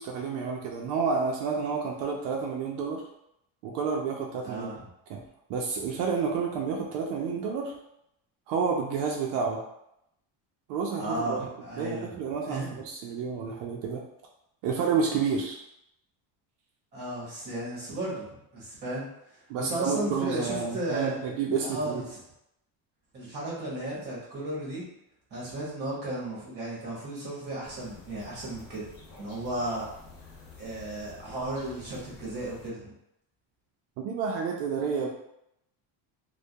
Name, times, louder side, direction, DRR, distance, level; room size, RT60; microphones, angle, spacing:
voice 1, 0.0-3.0 3.6-4.7 5.1-5.2 5.5-7.7 8.5-9.6 10.7-11.5 11.8-14.0 14.6-15.6 19.5-22.0 34.0-35.1, right 5 dB, 75° right, 0 dB, 0.5 m, -30 dB
voice 2, 4.4-4.8 11.0-12.2 12.5-12.8 16.9-18.2 18.5-19.1 19.6-21.2 21.6-22.2 23.1-24.8 25.3-28.9 29.2-29.8 30.6-32.9, right 1 dB, 25° right, -6 dB, 0.8 m, -34 dB
sound 1, 27.6-32.7, left 3 dB, 50° left, 0.6 m, -49 dB
2.2 x 2.1 x 2.6 m, 0.80 s
cardioid pair, 175°, 45 cm